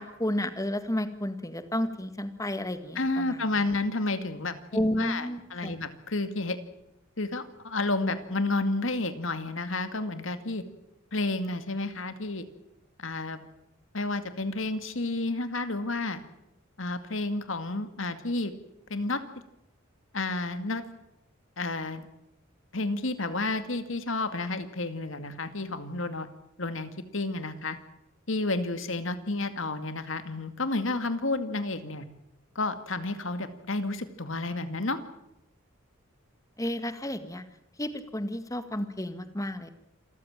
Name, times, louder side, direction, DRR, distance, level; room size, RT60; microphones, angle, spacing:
voice 1, 0.0-3.4 4.7-5.8 36.6-37.4 37.8-39.7, left 1 dB, 15° left, 10 dB, 1.8 m, -31 dB
voice 2, 3.0-6.6 7.2-10.6 11.1-12.4 13.0-13.4 13.9-16.2 16.8-18.5 18.9-19.2 20.1-20.8 21.6-22.1 22.7-26.3 26.6-27.8 28.3-32.1 32.6-35.0, left 2 dB, 65° left, 10 dB, 2.3 m, -31 dB
27.5 x 14.5 x 9.0 m, 0.87 s
head